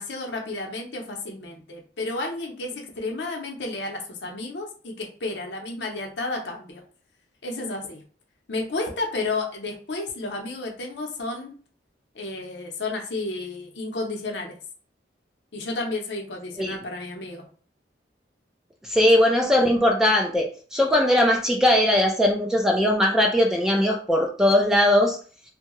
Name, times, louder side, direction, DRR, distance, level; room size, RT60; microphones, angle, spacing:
voice 1, 0.0-6.8 7.4-8.0 8.5-11.5 12.1-14.5 15.5-17.5 18.9-19.1, left 2 dB, 75° left, 1 dB, 0.7 m, -32 dB
voice 2, 18.9-25.2, left 1 dB, 5° right, 1 dB, 0.3 m, -20 dB
2.7 x 2.2 x 2.9 m, 0.42 s
head